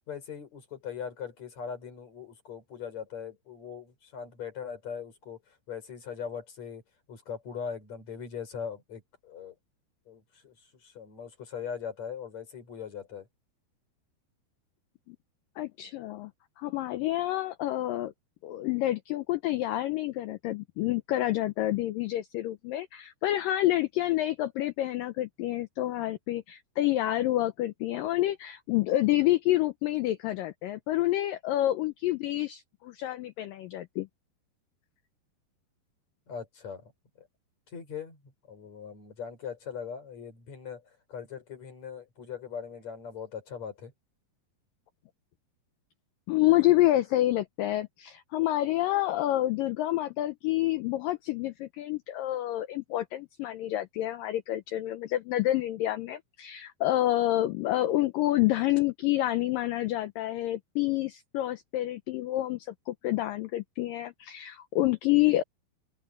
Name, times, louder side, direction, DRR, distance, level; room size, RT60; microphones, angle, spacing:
voice 1, 0.1-6.8 7.1-9.5 10.1-13.3 36.3-36.9 37.2-37.3 37.7-38.2 38.5-43.9, left 7 dB, 40° left, 5.9 m, -40 dB
voice 2, 15.6-16.3 16.6-18.1 18.4-34.1 46.3-65.4, left 15 dB, 90° left, 1.9 m, -28 dB
open air
omnidirectional pair, 4.9 m